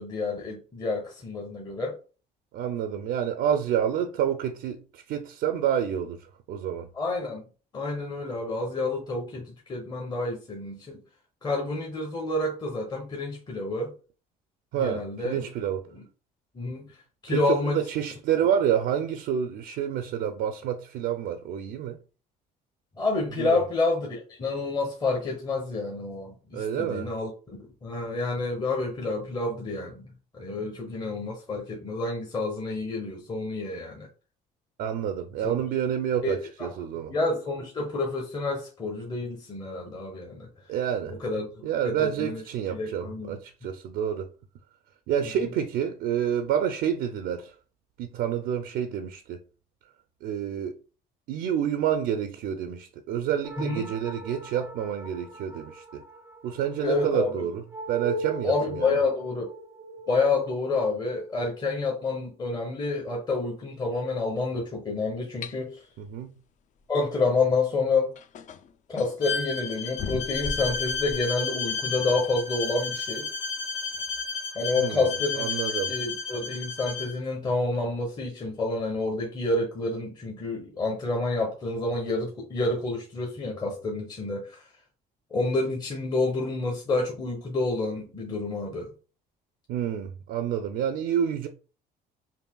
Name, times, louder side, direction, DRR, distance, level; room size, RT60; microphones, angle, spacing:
voice 1, 0.0-2.0 6.9-7.4 7.7-11.0 11.4-13.9 14.7-15.5 15.9-16.0 16.5-16.9 17.2-17.8 23.0-27.3 27.6-34.1 35.4-35.5 36.2-36.7 37.1-40.5 41.2-41.5 41.8-42.4 42.7-43.4 45.4-45.5 53.6-53.9 56.8-57.5 58.4-59.5 60.1-65.8 66.9-68.1 68.9-73.3 74.5-75.5 75.9-84.6 85.3-88.9, left 3 dB, 25° left, 0.9 m, -29 dB
voice 2, 2.5-6.9 14.7-15.9 17.3-22.0 23.4-23.6 26.5-27.1 34.8-37.1 40.7-41.2 41.6-44.3 45.1-47.5 48.0-49.4 50.2-50.7 51.3-56.0 56.4-57.6 57.9-59.0 66.0-66.3 74.8-75.9 89.7-91.5, right 9 dB, 80° right, 0.5 m, -28 dB
sound 1, 53.4-62.3, right 2 dB, 15° right, 0.4 m, -40 dB
sound 2, 65.4-65.6 67.4-67.5 68.2-69.2 70.0-71.3, left 4 dB, 45° left, 0.4 m, -37 dB
Bowed string instrument, 69.2-77.1, left 5 dB, 85° left, 1.2 m, -32 dB
5.5 x 2.5 x 2.2 m
cardioid pair, 110°, 17 cm